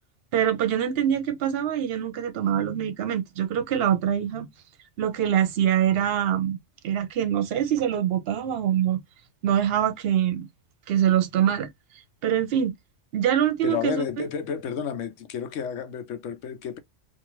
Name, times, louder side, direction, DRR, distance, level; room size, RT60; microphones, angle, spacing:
voice 1, 0.3-4.5 5.0-6.6 6.8-9.0 9.4-10.5 10.9-11.7 12.2-12.7 13.1-14.0, right 10 dB, 60° right, 0.8 m, -24 dB
voice 2, 13.6-16.8, left 7 dB, 80° left, 1.0 m, -31 dB
2.5 x 2.5 x 2.9 m
omnidirectional pair, 1.3 m